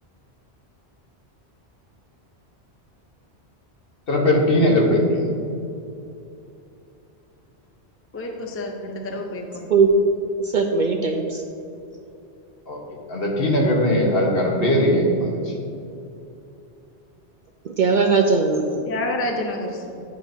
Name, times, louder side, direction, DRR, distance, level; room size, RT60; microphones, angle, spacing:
voice 1, 4.1-5.3 12.7-12.8 13.1-15.5, left 1 dB, 60° left, -1 dB, 1.3 m, -19 dB
voice 2, 8.1-9.7 18.9-20.0, left 1 dB, 15° left, 1 dB, 0.5 m, -29 dB
voice 3, 9.7-10.1 10.4-11.4 17.6-18.7, right 4 dB, 60° right, 3 dB, 0.5 m, -19 dB
9.6 x 6.3 x 2.7 m, 2.7 s
omnidirectional pair, 1.1 m